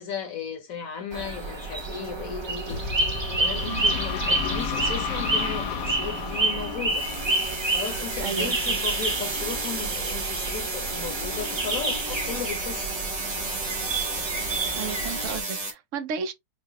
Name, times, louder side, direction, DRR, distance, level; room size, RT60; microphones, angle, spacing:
voice 1, 0.0-2.8 3.4-7.1 7.7-12.9, left 7 dB, 55° left, 1.4 m, -35 dB
sound 1, 1.1-15.4, right 2 dB, 45° right, 0.3 m, -29 dB
sound 2, 2.7-8.3, left 7 dB, 75° left, 1.2 m, -33 dB
sound 3, 6.9-15.7, right 3 dB, 30° right, 0.8 m, -32 dB
voice 2, 8.2-8.8 14.7-16.3, right 6 dB, 60° right, 0.8 m, -33 dB
4.8 x 2.1 x 2.9 m
omnidirectional pair, 1.9 m